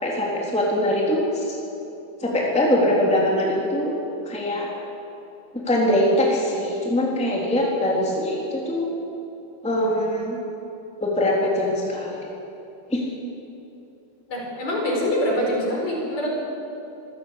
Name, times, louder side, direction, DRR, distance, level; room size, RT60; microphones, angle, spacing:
voice 1, 0.0-1.2 1.5-1.6 2.2-3.9 4.2-4.7 5.6-8.9 9.6-10.4 11.0-12.3 12.9-13.0, left 1 dB, ahead, -3 dB, 3.2 m, -22 dB
voice 2, 14.3-16.3, equal, 50° left, -1 dB, 5.8 m, -24 dB
26.5 x 16.0 x 8.4 m, 2.8 s
omnidirectional pair, 4.1 m